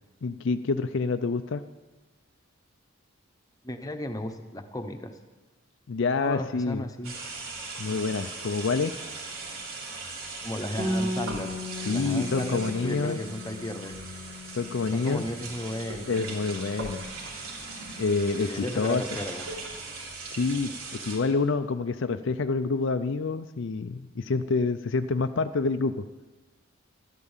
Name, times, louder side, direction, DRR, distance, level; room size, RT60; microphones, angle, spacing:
voice 1, 0.2-1.6 5.9-6.8 7.8-9.0 11.8-13.2 14.5-15.2 16.1-17.0 18.0-19.0 20.3-20.7 21.0-26.0, left 4 dB, 55° left, 9 dB, 0.5 m, -27 dB
voice 2, 3.6-5.1 6.2-7.1 10.4-11.5 11.9-13.9 14.9-16.2 18.4-19.5, left 1 dB, 15° left, 6 dB, 0.9 m, -34 dB
sound 1, 7.0-21.2, right 3 dB, 85° right, 3.2 m, -39 dB
Bass guitar, 10.8-17.0, left 1 dB, 30° right, 2.2 m, -37 dB
12.5 x 12.0 x 7.3 m, 1.2 s
head